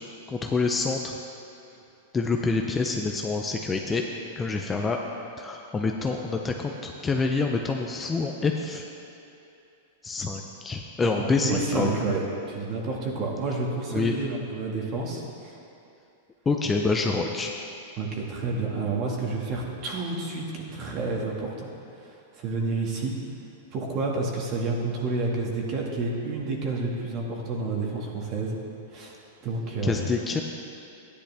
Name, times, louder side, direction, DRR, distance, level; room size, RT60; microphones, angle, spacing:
voice 1, 0.3-1.2 2.1-4.0 4.4-5.0 5.4-8.9 10.0-11.9 13.9-14.1 16.5-17.5 29.8-30.4, left 4 dB, 15° left, 2 dB, 0.5 m, -27 dB
voice 2, 11.2-15.5 18.0-21.7 22.4-23.1 23.7-28.6 28.9-29.2 29.4-30.0, right 3 dB, 35° right, -1 dB, 1.8 m, -29 dB
13.5 x 10.0 x 3.4 m, 2.8 s
supercardioid pair, 150°, 0 cm